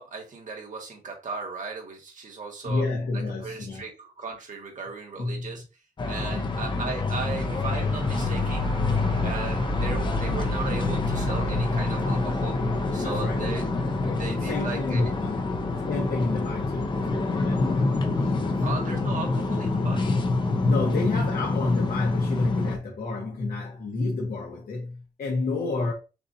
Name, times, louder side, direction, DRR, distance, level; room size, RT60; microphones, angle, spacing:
voice 1, 0.0-2.8 3.1-5.6 6.1-8.7 9.2-12.6 12.9-13.7 14.2-15.1 18.6-20.1, right 4 dB, 50° right, 1.5 m, -36 dB
voice 2, 2.6-3.8 5.2-5.6 6.3-6.6 12.8-13.5 14.4-15.4 15.9-18.7 20.6-25.9, left 3 dB, 65° left, 1.2 m, -29 dB
sound 1, 6.0-22.8, left 3 dB, 30° left, 0.6 m, -26 dB
sound 2, 7.1-18.7, right 3 dB, 30° right, 0.5 m, -37 dB
6.8 x 2.5 x 2.7 m
wide cardioid pair, 170°, 16 cm